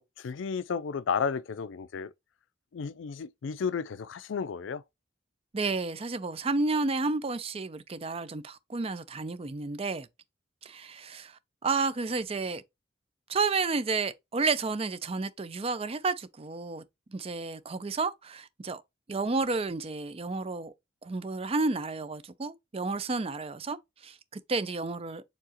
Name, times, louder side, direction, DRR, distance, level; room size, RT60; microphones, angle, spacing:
voice 1, 0.0-2.1 2.7-4.8, left 6 dB, 80° left, 0.4 m, -33 dB
voice 2, 5.5-10.1 10.6-12.6 13.3-16.8 17.1-18.8 19.1-20.7 21.0-23.8 24.0-25.2, right 3 dB, 30° right, 0.5 m, -31 dB
4.8 x 3.7 x 2.9 m
head